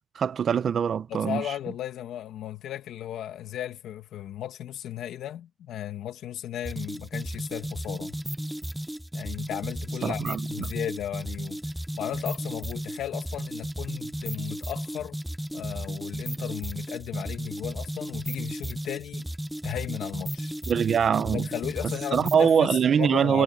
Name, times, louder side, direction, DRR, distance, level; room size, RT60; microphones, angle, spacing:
voice 1, 0.1-1.4 10.0-10.7 20.7-21.5 22.1-23.4, right 7 dB, 50° right, 0.8 m, -23 dB
voice 2, 1.1-8.2 9.1-11.6 12.0-15.2 15.5-19.3 19.6-20.5 21.3-23.4, left 11 dB, 85° left, 2.1 m, -35 dB
sound 1, 6.7-22.5, equal, 5° right, 0.4 m, -34 dB
cardioid pair, 140°, 0 cm